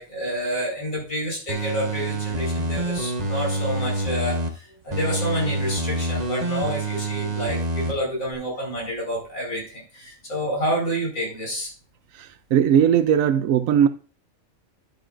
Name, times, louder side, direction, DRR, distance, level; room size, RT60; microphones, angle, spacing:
voice 1, 0.0-11.7, equal, 75° left, 5.3 m, -29 dB
sound 1, 1.5-4.5 4.9-7.9 8.3-8.4, right 2 dB, 35° right, 1.2 m, -27 dB
voice 2, 12.2-13.9, right 9 dB, 80° right, 1.0 m, -19 dB
10.5 x 9.0 x 2.5 m
omnidirectional pair, 1.4 m